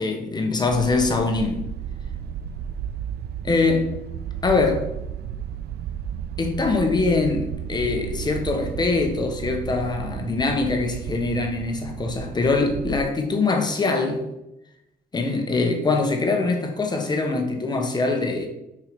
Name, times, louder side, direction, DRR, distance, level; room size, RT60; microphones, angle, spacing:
voice 1, 0.0-1.6 3.4-4.0 4.4-4.9 6.4-14.3 15.1-18.5, left 3 dB, 25° left, 1.1 m, -23 dB
sound 1, 0.7-13.1, right 9 dB, 75° right, 0.4 m, -33 dB
6.3 x 4.6 x 5.2 m
wide cardioid pair, 160°, 17 cm